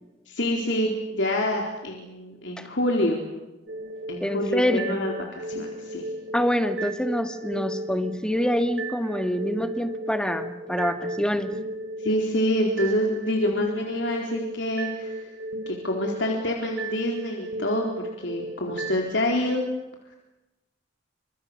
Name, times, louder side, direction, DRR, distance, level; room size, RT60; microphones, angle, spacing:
voice 1, 0.3-3.2 4.1-6.0 12.0-15.3 15.7-19.6, left 1 dB, 75° left, 0 dB, 4.0 m, -27 dB
sound 1, 3.7-19.1, right 1 dB, 85° right, 5.3 m, -35 dB
voice 2, 4.2-5.0 6.3-11.5, equal, 5° left, 7 dB, 2.0 m, -26 dB
29.0 x 26.5 x 6.8 m, 0.99 s
head